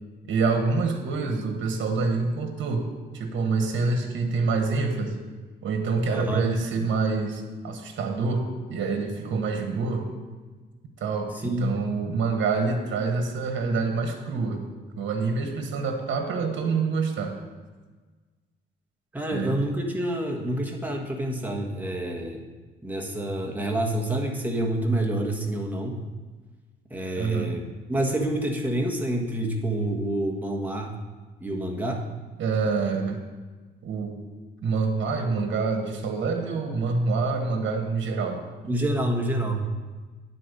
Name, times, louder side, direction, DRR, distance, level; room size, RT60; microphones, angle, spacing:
voice 1, 0.3-2.9 3.1-5.2 5.6-10.1 11.0-14.6 15.0-17.3 19.3-19.6 27.2-27.6 32.4-33.2 33.8-34.2 34.6-38.4, right 4 dB, 65° right, 5 dB, 1.2 m, -26 dB
voice 2, 6.1-6.4 11.4-11.7 19.1-22.4 22.8-26.0 26.9-31.0 31.4-32.0 38.7-39.7, right 1 dB, 10° right, 1 dB, 1.4 m, -28 dB
9.7 x 4.3 x 6.6 m, 1.3 s
cardioid pair, 90°, 20 cm